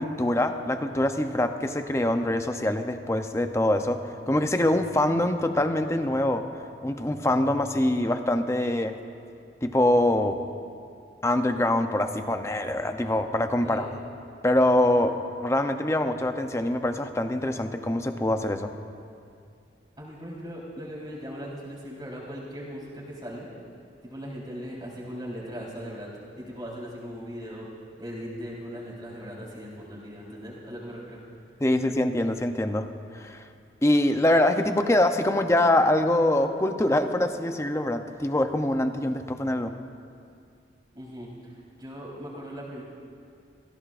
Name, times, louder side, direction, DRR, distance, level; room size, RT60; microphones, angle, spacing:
voice 1, 0.0-4.0 4.3-6.5 6.8-9.0 9.6-10.4 11.2-13.9 14.4-18.7 31.6-32.9 33.1-33.4 33.8-39.8, left 1 dB, 15° left, 7 dB, 0.6 m, -24 dB
voice 2, 20.0-23.5 24.0-26.1 26.4-27.7 28.0-31.2 40.9-42.8, equal, 25° right, -6 dB, 4.0 m, -39 dB
27.0 x 16.5 x 2.5 m, 2.4 s
head